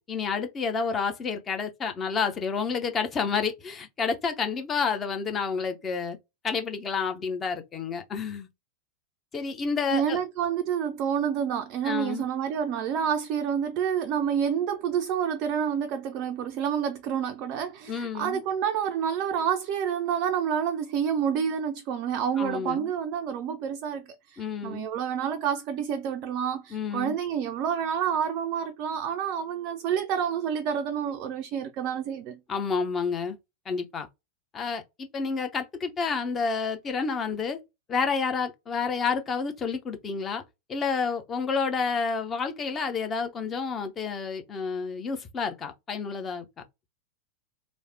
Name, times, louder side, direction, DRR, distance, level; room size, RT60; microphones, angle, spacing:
voice 1, 0.0-6.2 6.4-8.5 9.3-10.2 11.8-12.2 17.9-18.4 22.4-22.9 24.4-24.9 26.7-27.2 32.5-33.4 33.7-34.1 34.5-37.6 37.9-40.4 40.7-46.5, left 5 dB, 25° left, 0.6 m, -29 dB
voice 2, 9.9-32.4, right 8 dB, 40° right, 0.3 m, -28 dB
3.2 x 2.0 x 2.6 m
figure-of-eight pair, 90°, 0 cm